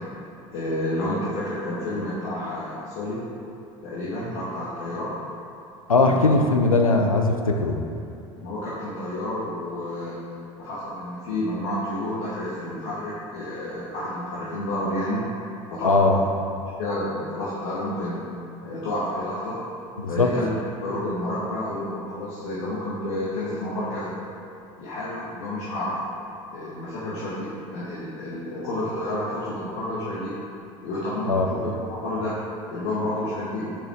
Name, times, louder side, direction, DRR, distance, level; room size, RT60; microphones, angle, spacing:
voice 1, 0.5-3.3 3.8-5.1 6.0-6.5 6.9-7.1 8.4-10.2 10.6-15.2 15.7-16.3 16.8-18.3 18.6-19.6 20.1-24.1 24.8-25.9 26.5-30.3 30.8-32.4 32.7-33.8, left 1 dB, 60° left, -9 dB, 1.3 m, -30 dB
voice 2, 5.9-7.8 15.8-16.2 20.0-20.3 31.3-31.5, left 3 dB, 90° left, 3 dB, 0.5 m, -20 dB
6.5 x 6.2 x 3.5 m, 2.5 s
figure-of-eight pair, 70°, 17 cm